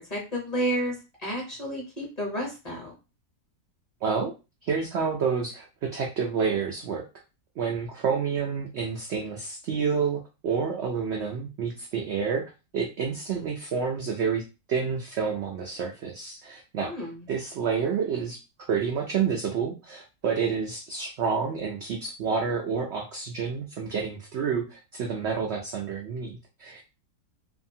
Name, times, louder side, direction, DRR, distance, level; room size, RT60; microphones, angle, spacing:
voice 1, 0.1-0.9 1.2-2.9 16.8-17.3, right 1 dB, 30° left, -2 dB, 0.9 m, -31 dB
voice 2, 4.0-4.3 4.6-7.0 7.6-12.4 12.7-14.4 14.7-16.9 17.3-18.4 18.7-26.9, right 6 dB, 70° right, 1 dB, 0.6 m, -29 dB
2.7 x 2.5 x 2.7 m, 0.29 s
omnidirectional pair, 1.6 m